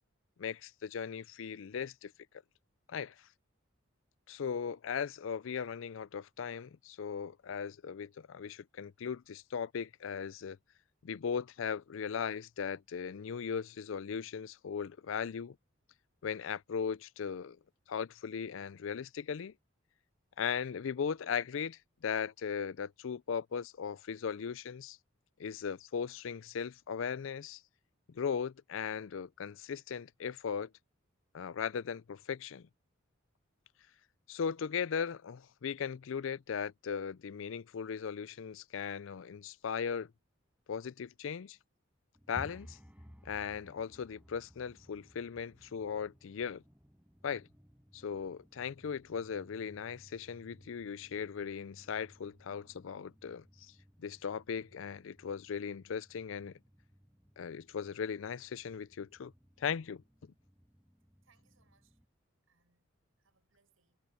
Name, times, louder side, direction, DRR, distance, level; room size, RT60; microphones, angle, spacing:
voice 1, 0.4-2.1 2.9-3.1 4.3-10.6 11.0-15.6 16.2-17.6 17.9-19.5 20.4-25.0 25.4-27.6 28.1-30.7 31.3-32.7 34.3-40.1 40.7-41.6 42.3-42.8 43.2-46.6 47.2-47.5 47.9-53.4 54.0-56.5 57.4-59.3 59.6-60.3, left 7 dB, 70° left, 0.4 m, -38 dB
sound 1, 42.1-62.0, equal, 5° right, 5.2 m, -59 dB
voice 2, 61.2-62.0 62.5-62.9 63.2-64.0, right 5 dB, 85° right, 5.4 m, -73 dB
head